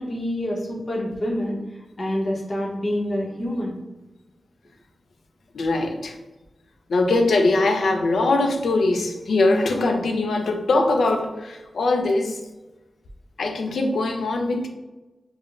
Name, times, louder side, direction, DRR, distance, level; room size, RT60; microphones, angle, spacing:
voice 1, 0.0-1.6 2.0-3.7, left 1 dB, 55° left, -3 dB, 0.8 m, -27 dB
voice 2, 5.5-6.2 6.9-12.4 13.4-14.7, left 2 dB, 80° left, 4 dB, 0.4 m, -21 dB
4.4 x 2.1 x 2.4 m, 1.1 s
cardioid pair, 45°, 0 cm